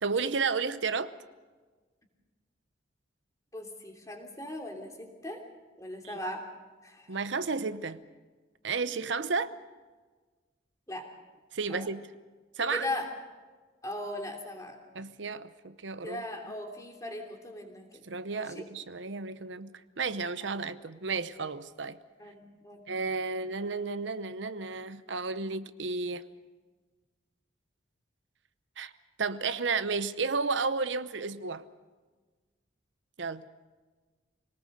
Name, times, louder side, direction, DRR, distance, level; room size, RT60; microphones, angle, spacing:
voice 1, 0.0-1.1 6.0-6.1 7.1-8.0 8.6-9.5 11.5-12.1 12.6-12.9 14.9-16.2 18.1-22.0 22.9-26.2 28.8-28.9 29.2-31.6 33.2-33.4, right 4 dB, 85° right, 13 dB, 0.9 m, -32 dB
voice 2, 3.5-5.4 5.8-6.5 6.8-7.2 10.9-11.1 11.7-11.9 12.6-13.1 13.8-14.8 16.0-18.0 18.3-18.6 22.2-22.8, left 1 dB, 20° left, 2 dB, 3.0 m, -39 dB
26.0 x 19.0 x 6.7 m, 1.3 s
head